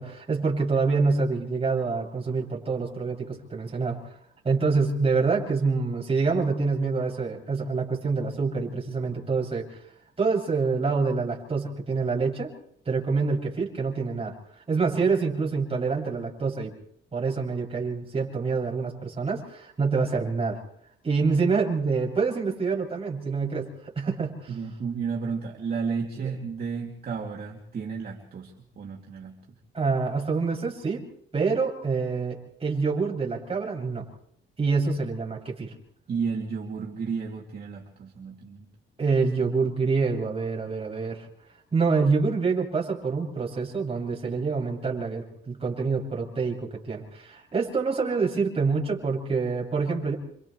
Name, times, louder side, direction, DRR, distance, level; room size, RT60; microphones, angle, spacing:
voice 1, 0.0-4.0 4.4-9.8 10.2-12.5 12.9-14.3 14.7-16.7 17.1-20.6 21.0-23.7 24.0-24.5 26.2-26.3 29.7-31.0 31.3-34.1 34.6-35.7 39.0-41.3 41.7-50.2, right 4 dB, 30° right, -2 dB, 7.6 m, -26 dB
voice 2, 24.5-29.4 36.1-38.6, right 5 dB, 50° right, -1 dB, 2.9 m, -32 dB
29.5 x 26.5 x 3.3 m, 0.68 s
cardioid pair, 90°, 20 cm